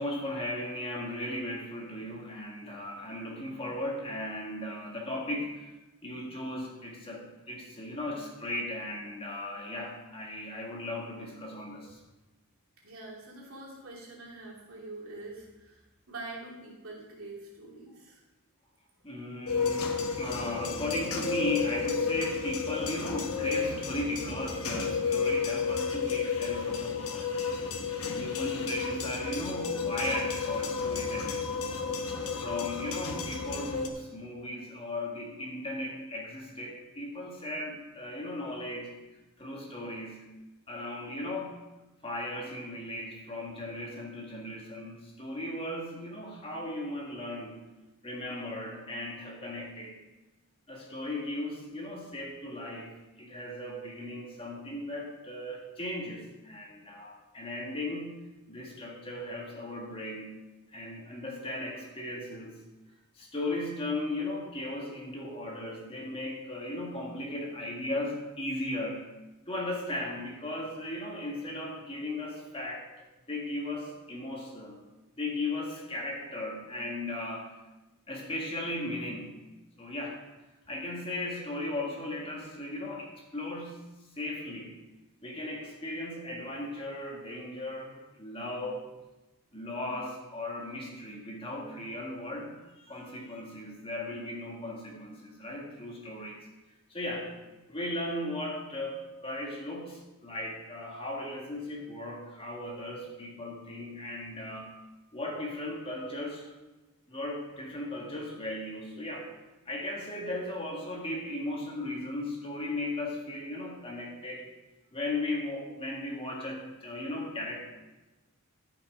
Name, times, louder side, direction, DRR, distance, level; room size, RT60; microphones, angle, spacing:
voice 1, 0.0-5.7 6.0-12.0 19.0-27.4 28.1-31.5 32.4-38.9 39.4-40.3 40.7-41.6 42.0-47.6 48.0-50.0 50.7-58.1 58.5-60.3 60.7-62.6 63.2-69.1 69.5-72.9 73.3-74.8 75.2-77.6 78.1-79.4 79.8-80.2 80.7-83.8 84.2-84.8 85.2-88.9 89.5-96.4 96.9-97.3 97.7-104.8 105.1-106.5 107.1-109.3 109.7-114.5 114.9-117.6, left 1 dB, 25° left, -1 dB, 1.8 m, -37 dB
voice 2, 12.8-15.8 16.1-18.2, right 2 dB, 70° right, -3 dB, 3.0 m, -45 dB
sound 1, 19.5-33.9, left 5 dB, 75° left, 1.1 m, -32 dB
13.5 x 5.9 x 4.9 m, 1.1 s
head